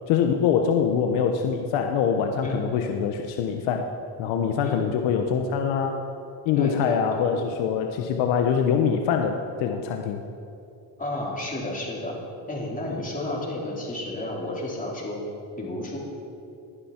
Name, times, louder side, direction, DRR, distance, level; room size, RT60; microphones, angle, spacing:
voice 1, 0.1-3.9 4.2-6.0 6.4-10.2, left 7 dB, 90° left, 4 dB, 1.1 m, -24 dB
voice 2, 4.6-5.0 6.5-7.3 11.0-12.1 12.5-15.2 15.6-16.0, left 1 dB, 20° left, -4 dB, 4.3 m, -32 dB
20.0 x 11.5 x 4.5 m, 2.6 s
cardioid pair, 110°, 44 cm